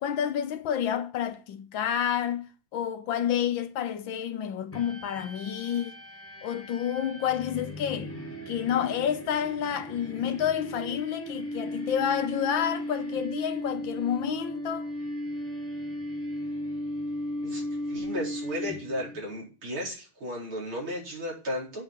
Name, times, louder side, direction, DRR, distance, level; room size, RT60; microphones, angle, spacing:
voice 1, 0.0-5.9 6.4-8.1 8.5-14.9, left 9 dB, 70° left, 1.5 m, -29 dB
sound 1, 4.7-19.2, equal, 5° left, 1.8 m, -36 dB
voice 2, 17.4-21.8, equal, 70° right, 5.2 m, -35 dB
8.7 x 5.5 x 7.2 m
omnidirectional pair, 2.4 m